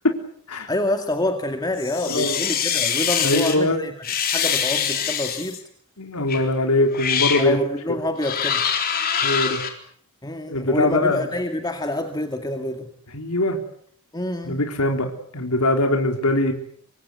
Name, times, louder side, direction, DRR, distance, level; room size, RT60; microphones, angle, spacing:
voice 1, 0.7-3.9 4.3-5.6 7.4-8.7 10.2-12.9 14.1-14.6, left 1 dB, 20° left, 5 dB, 2.1 m, -27 dB
sound 1, 1.8-3.6 4.0-5.6 6.3-6.4 6.9-7.5 8.2-9.7, left 8 dB, 45° left, 3.9 m, -24 dB
voice 2, 3.2-3.8 6.0-7.6 9.2-9.6 10.5-11.2 13.1-13.6 14.5-16.5, left 1 dB, 90° left, 4 dB, 3.8 m, -22 dB
26.0 x 24.5 x 8.1 m, 0.62 s
head